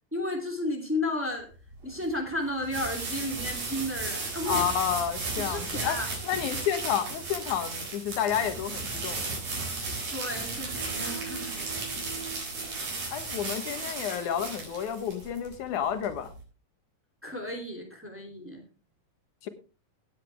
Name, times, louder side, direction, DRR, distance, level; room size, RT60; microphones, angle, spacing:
voice 1, 0.1-1.5 1.8-4.6 5.4-6.1 10.1-11.9 17.2-18.6, left 1 dB, 5° right, 2 dB, 2.7 m, -33 dB
sound 1, 1.5-16.4, right 3 dB, 85° right, 5.6 m, -35 dB
voice 2, 4.5-6.0 6.2-9.7 13.1-16.3 19.4-19.5, left 9 dB, 90° left, 9 dB, 2.7 m, -30 dB
sound 2, 10.7-12.9, right 6 dB, 25° right, 1.5 m, -43 dB
18.0 x 8.1 x 3.5 m, 0.32 s
omnidirectional pair, 3.4 m